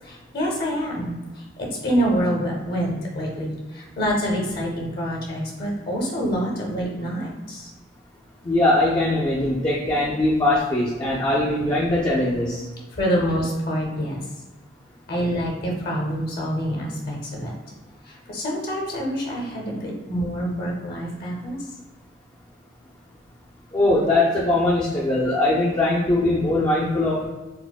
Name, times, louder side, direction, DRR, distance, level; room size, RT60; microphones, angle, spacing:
voice 1, 0.0-7.7 12.9-14.2 15.1-17.5 18.0-21.6, equal, 55° left, -1 dB, 0.7 m, -26 dB
voice 2, 8.4-12.6 23.7-27.3, left 2 dB, 20° left, -5 dB, 0.4 m, -21 dB
4.2 x 2.0 x 2.3 m, 1.2 s
head